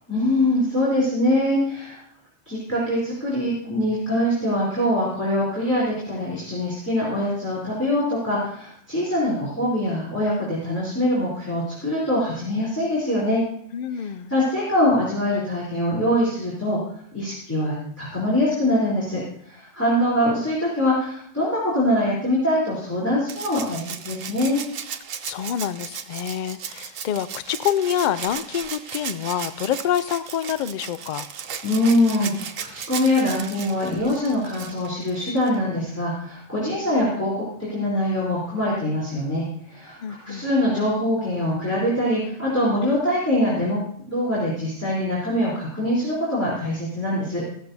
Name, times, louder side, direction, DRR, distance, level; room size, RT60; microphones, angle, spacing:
voice 1, 0.1-2.0 2.4-13.4 13.9-16.8 17.1-24.6 31.6-47.4, left 1 dB, 10° left, -8 dB, 3.4 m, -23 dB
voice 2, 13.7-14.3 25.2-31.3 40.0-40.5, left 10 dB, 65° left, 15 dB, 0.4 m, -27 dB
Rattle (instrument), 23.3-35.6 37.0-37.1, right 7 dB, 85° right, 1.2 m, -36 dB
14.5 x 13.0 x 2.7 m, 0.63 s
omnidirectional pair, 1.3 m